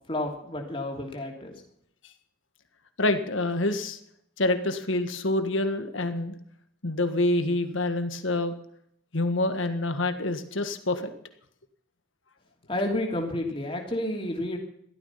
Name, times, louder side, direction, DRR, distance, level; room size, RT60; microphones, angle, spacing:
voice 1, 0.1-1.5 12.7-14.6, left 1 dB, 25° left, 1 dB, 3.0 m, -30 dB
voice 2, 3.0-4.0 4.4-6.3 6.8-8.6 9.1-11.0, left 2 dB, 75° left, 9 dB, 1.7 m, -26 dB
16.0 x 13.0 x 5.8 m, 0.70 s
head